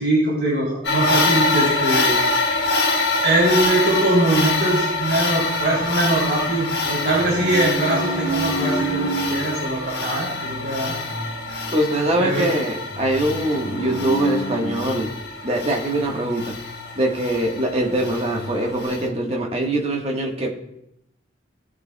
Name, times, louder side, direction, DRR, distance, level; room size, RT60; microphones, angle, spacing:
voice 1, 0.0-2.2 3.2-10.9 12.2-12.4, right 1 dB, 65° right, -5 dB, 3.2 m, -22 dB
sound 1, 0.8-19.1, left 3 dB, 60° left, 1.2 m, -25 dB
sound 2, 5.3-6.5 7.0-9.4 10.0-15.0 15.9-17.1 17.4-17.5 17.9-18.8, right 1 dB, 5° right, 3.3 m, -31 dB
voice 2, 11.7-15.1 15.4-16.5 16.9-20.5, right 1 dB, 30° right, 0 dB, 1.3 m, -23 dB
17.0 x 6.9 x 2.2 m, 0.79 s
head